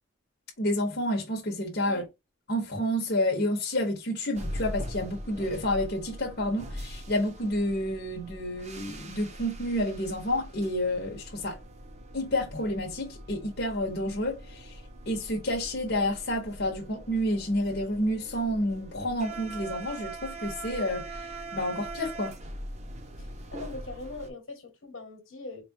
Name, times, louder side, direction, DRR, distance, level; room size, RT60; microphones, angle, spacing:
voice 1, 0.6-2.0 2.5-11.6 12.1-14.7 15.1-22.4, left 1 dB, 55° left, 1.0 m, -29 dB
sound 1, 4.3-24.3, right 1 dB, 35° right, 0.7 m, -42 dB
voice 2, 23.2-25.6, left 2 dB, 80° left, 1.3 m, -41 dB
4.6 x 2.3 x 2.7 m
head